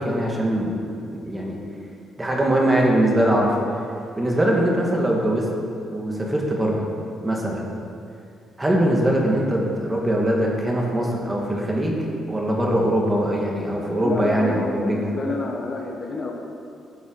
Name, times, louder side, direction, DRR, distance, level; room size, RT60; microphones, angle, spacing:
voice 1, 0.0-1.6 2.2-3.6 4.2-5.5 5.9-6.9 7.2-7.6 8.6-15.1, right 1 dB, 15° right, -1 dB, 2.3 m, -22 dB
voice 2, 14.0-16.3, left 2 dB, 40° left, 1 dB, 1.5 m, -29 dB
13.5 x 7.6 x 4.9 m, 2.5 s
cardioid pair, 90°, 0 cm